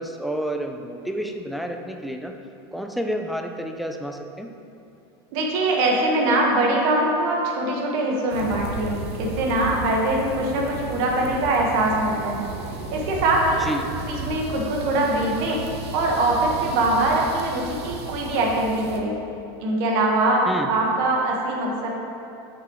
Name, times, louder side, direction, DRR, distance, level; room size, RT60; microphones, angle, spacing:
voice 1, 0.0-2.3 2.7-4.5 13.6-13.8 20.5-20.7, right 1 dB, ahead, 4 dB, 0.3 m, -30 dB
voice 2, 5.3-12.5 12.9-13.7 14.1-15.6 15.9-19.1 19.6-20.4 20.7-21.9, right 2 dB, 60° right, -1 dB, 1.4 m, -22 dB
sound 1, 8.3-19.0, right 3 dB, 85° right, 0.8 m, -34 dB
8.0 x 6.0 x 3.1 m, 2.7 s
supercardioid pair, 150°, 14 cm